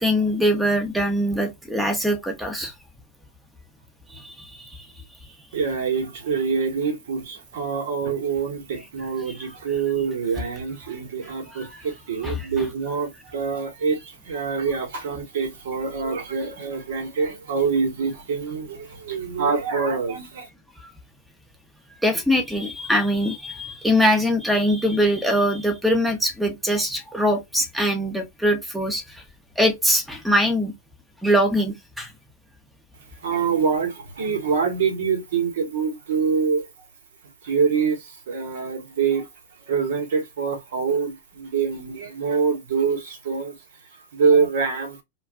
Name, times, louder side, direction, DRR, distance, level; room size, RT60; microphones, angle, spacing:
voice 1, 0.0-2.7 4.1-4.7 11.5-11.7 12.2-12.5 22.0-29.2 29.6-30.7 31.2-32.1, equal, 5° right, 0.8 m, -22 dB
voice 2, 5.5-20.5 33.2-36.7 37.4-39.3 39.7-43.5 44.1-45.0, right 5 dB, 70° right, 1.1 m, -25 dB
2.3 x 2.2 x 3.6 m
hypercardioid pair, 105°, 0 cm